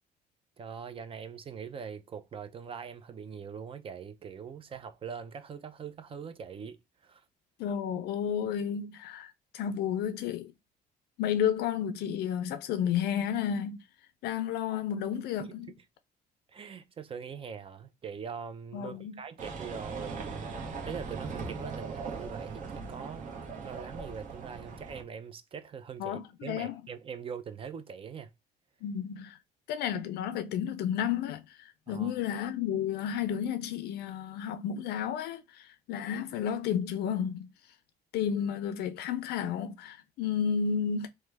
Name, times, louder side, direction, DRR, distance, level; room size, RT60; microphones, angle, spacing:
voice 1, 0.6-7.2 15.4-15.6 16.5-20.4 20.8-23.3 23.6-28.3 31.9-32.1, right 6 dB, 30° right, 0.4 m, -42 dB
voice 2, 7.6-10.5 11.2-13.8 14.2-15.7 18.7-19.1 26.0-26.8 28.8-29.4 29.7-37.5 38.1-41.1, left 8 dB, 75° left, 0.4 m, -32 dB
sound 1, 19.4-25.0, right 4 dB, 50° right, 0.9 m, -39 dB
3.1 x 2.1 x 3.3 m
cardioid pair, 110°, 17 cm